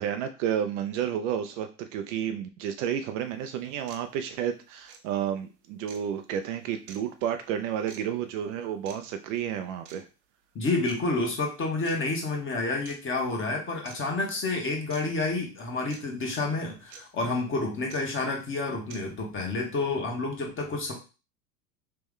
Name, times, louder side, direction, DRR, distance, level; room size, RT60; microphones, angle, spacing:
voice 1, 0.0-10.0, right 9 dB, 50° right, 7 dB, 0.5 m, -31 dB
sound 1, 3.2-3.3 3.9-4.0 4.8-5.0 5.9-6.0 6.9-7.0 7.9-8.0 8.8-9.0 9.8-10.0 10.8-11.0 11.8-12.0 12.8-13.0 13.8-14.0 14.9-15.0 15.9-16.0 16.9-17.0 17.9-18.0 18.9-19.0, right 6 dB, 80° right, 0.9 m, -47 dB
voice 2, 10.5-20.9, left 3 dB, 25° left, 1 dB, 1.3 m, -29 dB
3.4 x 2.9 x 3.6 m, 0.32 s
hypercardioid pair, 90°, 50 cm